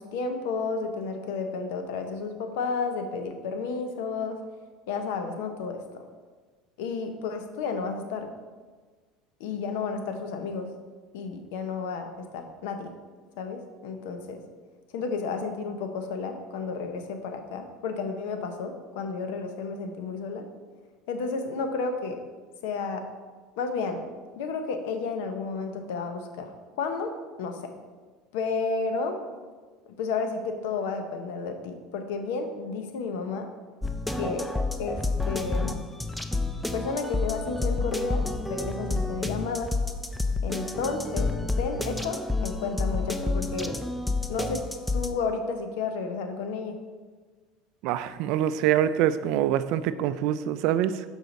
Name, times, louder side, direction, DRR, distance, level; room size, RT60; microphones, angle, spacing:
voice 1, 0.0-4.4 4.9-6.0 6.8-8.3 9.4-10.7 11.1-12.9 13.4-14.4 14.9-20.4 21.1-22.2 22.6-23.0 23.6-24.0 24.4-26.5 26.8-27.7 28.3-29.2 30.0-33.5 34.1-34.5 34.8-35.8 36.7-39.7 40.4-41.3 41.6-43.7 44.3-44.7 44.9-46.8, left 4 dB, 80° left, 6 dB, 0.8 m, -32 dB
sound 1, 33.8-45.1, left 3 dB, 5° left, 0.4 m, -29 dB
voice 2, 47.8-51.0, right 11 dB, 65° right, 13 dB, 0.3 m, -25 dB
6.8 x 4.5 x 3.9 m, 1.4 s
supercardioid pair, 115°, 0 cm